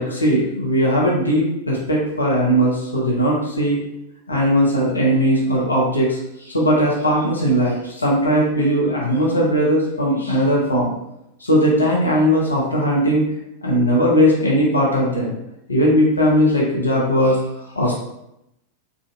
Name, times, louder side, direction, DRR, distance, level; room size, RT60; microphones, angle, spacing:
voice 1, 0.0-3.8 4.3-10.9 11.4-13.3 13.6-15.3 15.7-17.4 17.7-17.9, equal, 80° left, -4 dB, 0.8 m, -18 dB
3.3 x 2.6 x 2.4 m, 0.83 s
figure-of-eight pair, 90°, 0 cm